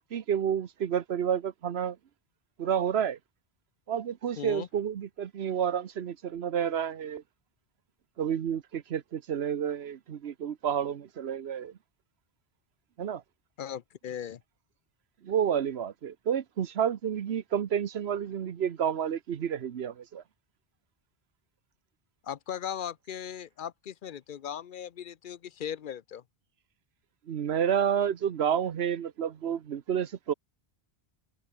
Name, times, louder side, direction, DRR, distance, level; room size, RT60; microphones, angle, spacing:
voice 1, 0.1-2.0 2.6-3.2 3.9-7.2 8.2-11.7 13.0-13.2 15.2-20.2 27.3-30.3, right 8 dB, 85° right, 1.1 m, -30 dB
voice 2, 4.4-4.7 13.6-14.4 22.2-26.2, left 9 dB, 60° left, 0.8 m, -38 dB
omnidirectional pair, 1.1 m